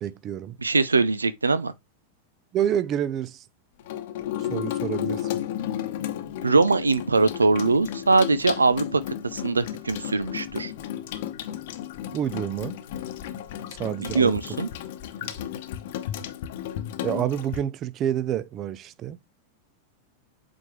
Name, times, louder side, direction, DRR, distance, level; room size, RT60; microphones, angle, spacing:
voice 1, 0.0-0.6 2.5-3.4 4.5-5.3 12.1-12.7 13.8-14.4 15.2-15.4 17.0-19.2, right 10 dB, 35° right, 0.6 m, -28 dB
voice 2, 0.6-1.7 6.4-9.0 9.3-10.7 14.0-14.7, right 3 dB, 75° right, 0.7 m, -22 dB
Water tap faucet / Sink (filling or washing), 3.8-17.6, left 11 dB, 55° left, 0.9 m, -33 dB
7.8 x 4.5 x 3.2 m
figure-of-eight pair, 90°, 0 cm